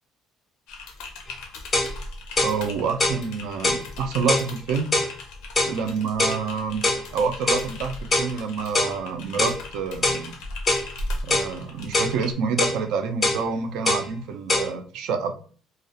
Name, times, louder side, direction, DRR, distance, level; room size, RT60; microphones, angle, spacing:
Typing, 0.7-12.3, left 2 dB, 85° left, 0.5 m, -38 dB
sound 1, 1.3-1.4 1.7-1.9 2.4-2.6 3.0-3.2 3.6-3.9 4.3-4.5 4.9-5.1 5.6-5.8 6.2-6.4 6.8-7.0 7.5-7.7 8.1-8.3 8.7-9.0 9.4-9.6 10.0-10.2 10.7-10.9 11.3-11.5 11.9-12.2 12.6-12.8 13.2-13.4 13.9-14.1 14.5-14.7, left 2 dB, 20° left, 0.3 m, -23 dB
voice 1, 2.4-4.9 5.6-6.9 7.1-10.4 11.2-15.3, right 5 dB, 70° right, 7 dB, 0.3 m, -27 dB
2.3 x 2.0 x 2.6 m, 0.42 s
cardioid pair, 180°, 0 cm